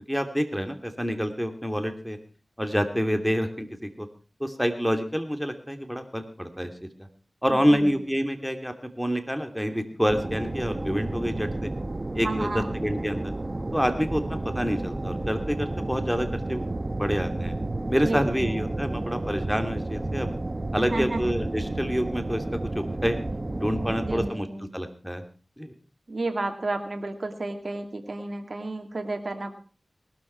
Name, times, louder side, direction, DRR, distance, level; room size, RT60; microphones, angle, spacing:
voice 1, 0.1-2.2 2.6-4.1 4.4-6.9 7.4-11.7 12.1-12.5 12.7-13.3 13.7-16.6 17.0-17.5 17.9-20.3 20.7-23.2 23.5-24.5 24.7-25.2 25.6-25.7, equal, ahead, 7 dB, 2.9 m, -27 dB
voice 2, 7.5-8.0 12.2-12.7 18.0-18.6 20.8-21.2 23.8-24.7 26.1-29.5, right 2 dB, 60° right, 4 dB, 2.3 m, -32 dB
sound 1, 10.1-24.3, right 2 dB, 40° right, 1.2 m, -31 dB
19.0 x 12.5 x 4.7 m, 0.37 s
cardioid pair, 45°, 0 cm